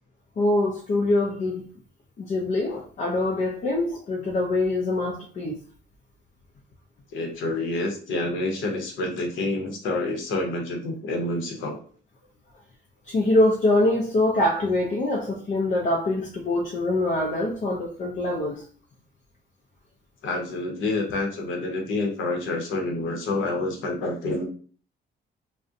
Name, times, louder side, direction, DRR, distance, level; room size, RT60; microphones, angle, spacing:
voice 1, 0.4-1.6 2.2-5.6 13.1-18.6, left 2 dB, 40° left, 0.4 m, -24 dB
voice 2, 7.1-11.8 20.2-24.4, left 2 dB, 80° left, 0.8 m, -28 dB
2.4 x 2.1 x 2.6 m
cardioid pair, 90°, 20 cm